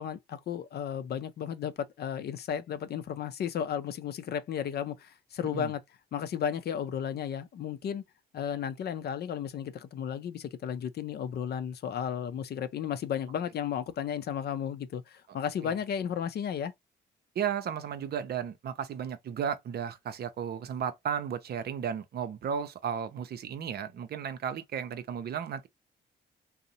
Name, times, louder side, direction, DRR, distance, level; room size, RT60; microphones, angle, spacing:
voice 1, 0.0-5.8 6.1-8.0 8.3-16.7, left 8 dB, 55° left, 0.5 m, -34 dB
voice 2, 17.4-25.7, right 8 dB, 55° right, 0.5 m, -34 dB
2.6 x 2.0 x 2.6 m
supercardioid pair, 55°, 20 cm